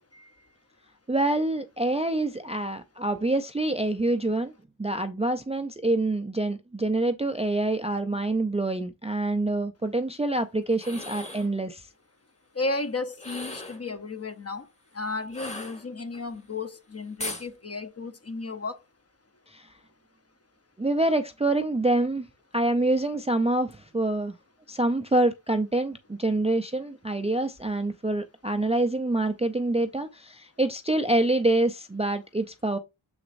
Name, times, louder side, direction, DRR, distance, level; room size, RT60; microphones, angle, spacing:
voice 1, 1.1-4.5 4.8-11.8 19.5-19.7 20.8-22.3 22.5-24.4 24.7-32.8, right 2 dB, 15° right, 0.4 m, -26 dB
sound 1, 10.7-11.5 13.1-13.9 15.3-16.2 17.2-17.5, left 2 dB, 15° left, 1.2 m, -37 dB
voice 2, 12.5-14.7 14.9-18.8, left 3 dB, 30° left, 0.8 m, -33 dB
7.2 x 6.2 x 2.6 m
wide cardioid pair, 130°, 49 cm